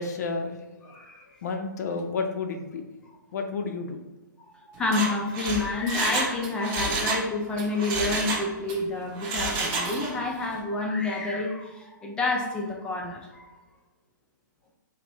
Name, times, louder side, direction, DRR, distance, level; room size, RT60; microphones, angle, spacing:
voice 1, 0.0-1.0 1.4-2.8 3.3-4.0, left 4 dB, 55° left, 5 dB, 0.6 m, -31 dB
voice 2, 0.9-1.4 4.5-13.5, left 3 dB, 10° left, 0 dB, 0.3 m, -29 dB
Mechanisms, 4.8-7.3 7.6-8.8 9.2-10.2 10.5-10.6, right 3 dB, 25° right, 0.7 m, -29 dB
4.1 x 2.6 x 3.0 m, 1.2 s
hypercardioid pair, 155°, 11 cm